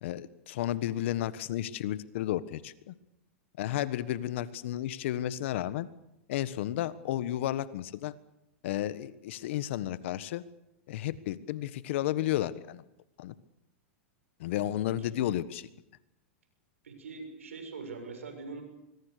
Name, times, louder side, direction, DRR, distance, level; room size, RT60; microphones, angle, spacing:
voice 1, 0.0-2.9 3.6-5.9 6.3-8.1 8.6-10.4 10.9-12.8 13.2-13.3 14.4-15.7, left 13 dB, 65° left, 15 dB, 1.4 m, -32 dB
voice 2, 16.8-18.6, right 4 dB, 90° right, 6 dB, 7.0 m, -42 dB
24.5 x 22.5 x 6.8 m, 0.88 s
hypercardioid pair, 115°, 7 cm